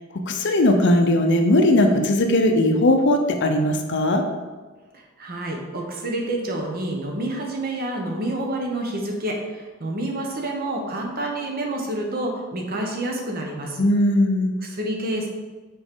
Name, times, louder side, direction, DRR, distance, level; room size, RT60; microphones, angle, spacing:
voice 1, 0.3-4.2 13.8-14.5, left 1 dB, 55° left, 4 dB, 0.6 m, -18 dB
voice 2, 4.9-13.8 14.6-15.3, right 1 dB, 40° right, 1 dB, 0.9 m, -28 dB
6.2 x 4.4 x 3.6 m, 1.3 s
head